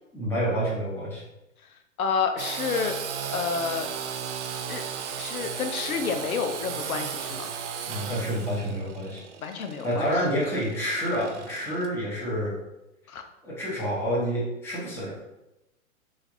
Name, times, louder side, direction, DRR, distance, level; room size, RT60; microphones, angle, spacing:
voice 1, 0.1-1.2 7.9-9.2 9.8-12.5 13.4-15.1, equal, 5° left, -6 dB, 0.7 m, -28 dB
voice 2, 2.0-2.9 3.3-3.9 4.7-4.8 5.2-7.5 9.4-10.1 13.1-13.2, left 6 dB, 90° left, 6 dB, 0.6 m, -29 dB
Engine / Sawing, 2.4-11.9, right 7 dB, 60° right, 0.5 m, -35 dB
3.2 x 2.4 x 3.7 m, 0.92 s
hypercardioid pair, 135°, 41 cm